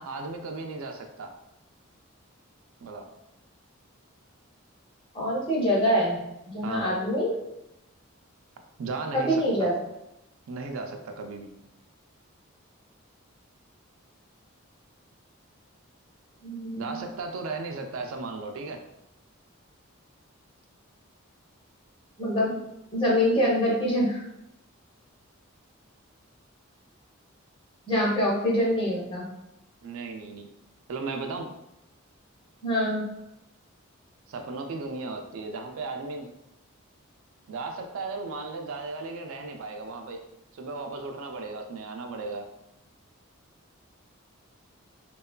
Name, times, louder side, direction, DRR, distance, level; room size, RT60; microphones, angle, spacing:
voice 1, 0.0-1.3 2.8-3.1 6.6-6.9 8.8-9.7 10.5-11.5 16.8-18.8 29.8-30.5 30.9-31.5 34.3-36.3 37.5-40.2 40.5-42.5, right 3 dB, 70° right, 4 dB, 0.3 m, -35 dB
voice 2, 5.1-6.2 6.5-7.3 9.1-9.7 16.4-17.1 22.2-22.6 22.9-24.2 27.9-29.3 32.6-33.0, equal, 25° left, -4 dB, 0.6 m, -25 dB
2.8 x 2.3 x 2.2 m, 0.86 s
head